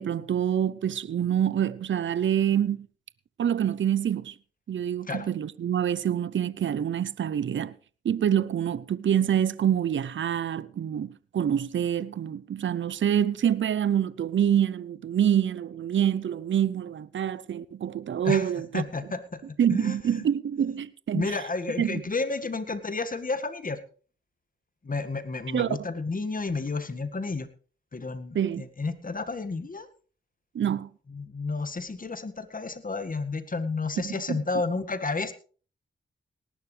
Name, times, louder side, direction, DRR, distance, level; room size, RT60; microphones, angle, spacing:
voice 1, 0.0-2.9 3.4-4.3 4.7-7.7 8.0-18.8 19.6-21.4 21.8-22.0 25.5-25.8 28.3-28.6 30.5-30.9 34.0-34.4, right 9 dB, 65° right, 0.7 m, -26 dB
voice 2, 18.2-20.3 21.1-23.8 24.8-27.5 27.9-29.9 31.1-35.3, left 3 dB, 40° left, 1.9 m, -31 dB
18.5 x 11.5 x 3.4 m
cardioid pair, 50°, 21 cm